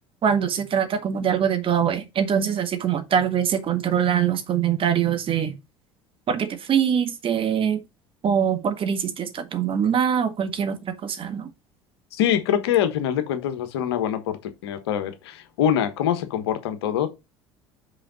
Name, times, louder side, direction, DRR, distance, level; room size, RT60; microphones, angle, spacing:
voice 1, 0.2-5.6 6.3-7.8 8.2-10.8 11.0-11.4, right 8 dB, 40° right, 1.6 m, -23 dB
voice 2, 12.1-17.1, left 9 dB, 80° left, 1.3 m, -24 dB
5.6 x 4.9 x 5.1 m
hypercardioid pair, 70°, 13 cm